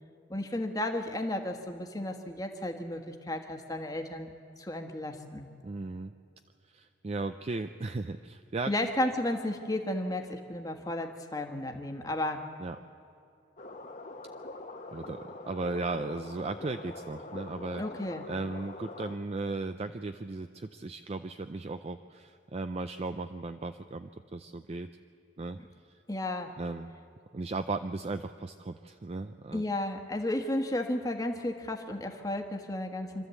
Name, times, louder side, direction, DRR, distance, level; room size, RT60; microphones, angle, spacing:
voice 1, 0.3-4.3 4.6-5.5 8.7-12.4 17.8-18.3 26.1-26.5 29.5-33.3, left 1 dB, 20° left, 4 dB, 1.4 m, -33 dB
voice 2, 5.6-6.1 6.7-8.7 12.6-12.8 14.9-17.8 18.3-24.9 25.4-25.6 26.6-26.9 27.3-29.6, right 3 dB, 35° right, 9 dB, 0.4 m, -36 dB
sound 1, 13.6-19.2, left 2 dB, 40° left, 1.2 m, -44 dB
26.0 x 13.0 x 8.2 m, 2.6 s
head